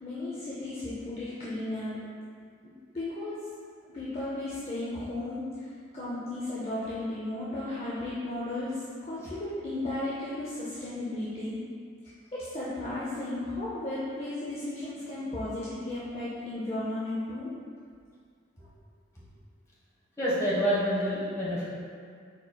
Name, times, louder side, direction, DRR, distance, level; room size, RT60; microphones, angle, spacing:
voice 1, 0.0-2.0 2.9-3.5 3.9-5.7 5.9-11.6 12.3-17.5, left 2 dB, 30° left, -9 dB, 0.6 m, -34 dB
voice 2, 20.2-21.7, equal, 15° left, -9 dB, 1.1 m, -27 dB
4.7 x 4.3 x 2.3 m, 2.1 s
head